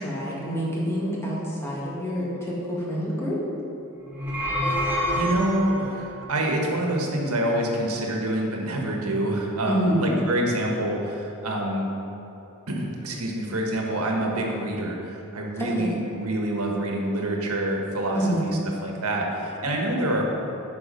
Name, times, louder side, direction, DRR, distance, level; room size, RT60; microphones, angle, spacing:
voice 1, 0.0-3.4 9.7-10.1 15.6-15.9 18.1-18.4, equal, 10° left, -6 dB, 1.9 m, -27 dB
sound 1, 4.1-6.0, equal, 10° right, 1.2 m, -26 dB
voice 2, 5.1-11.9 12.7-20.2, right 1 dB, 75° right, 0 dB, 1.5 m, -26 dB
9.7 x 5.8 x 5.4 m, 2.9 s
head